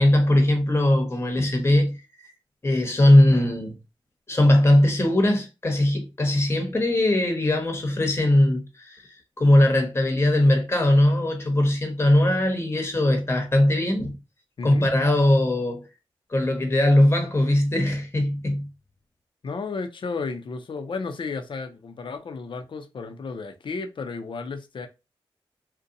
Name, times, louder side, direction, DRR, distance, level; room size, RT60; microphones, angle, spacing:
voice 1, 0.0-2.0 2.6-3.8 4.3-9.0 9.4-14.1 14.6-15.8 16.3-18.7, left 1 dB, 25° left, 0.8 m, -20 dB
voice 2, 14.6-14.9 19.4-24.9, left 4 dB, 60° left, 0.5 m, -33 dB
2.7 x 2.1 x 2.6 m
cardioid pair, 50°, 10 cm